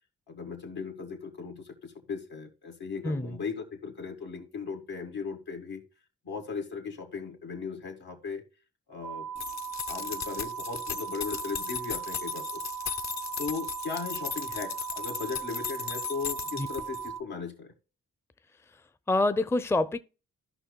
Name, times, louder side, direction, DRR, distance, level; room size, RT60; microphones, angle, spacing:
voice 1, 0.3-5.8 6.2-8.4 8.9-9.4 9.9-12.6 13.4-17.7, left 5 dB, 85° left, 2.0 m, -37 dB
sound 1, 9.0-17.2, right 8 dB, 85° right, 0.7 m, -38 dB
sound 2, 9.4-17.1, left 8 dB, 45° left, 0.7 m, -37 dB
voice 2, 19.1-20.0, left 2 dB, 5° left, 0.5 m, -26 dB
14.5 x 5.5 x 2.2 m
supercardioid pair, 45°, 37 cm